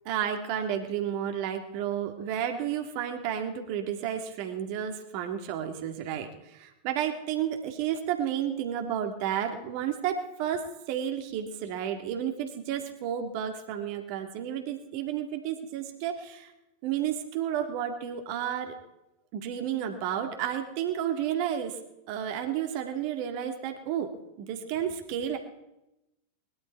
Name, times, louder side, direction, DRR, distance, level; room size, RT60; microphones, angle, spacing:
voice 1, 0.1-16.5 16.8-18.8 19.3-21.8 22.1-24.1 24.4-25.4, right 9 dB, 45° right, 5 dB, 2.0 m, -31 dB
20.5 x 12.0 x 4.6 m, 0.91 s
figure-of-eight pair, 90°, 0 cm